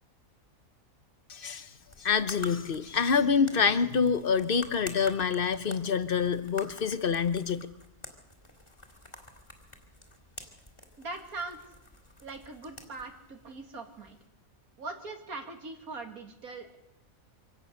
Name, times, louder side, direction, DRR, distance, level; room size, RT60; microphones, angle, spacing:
voice 1, 1.3-1.7 2.0-7.7, left 6 dB, 40° left, 13 dB, 1.1 m, -26 dB
sound 1, 1.8-14.3, left 1 dB, 20° left, 2.7 m, -49 dB
voice 2, 11.0-11.7 12.2-14.2 14.8-16.8, right 3 dB, 80° right, 5 dB, 2.7 m, -41 dB
25.5 x 17.5 x 6.7 m, 0.90 s
omnidirectional pair, 1.5 m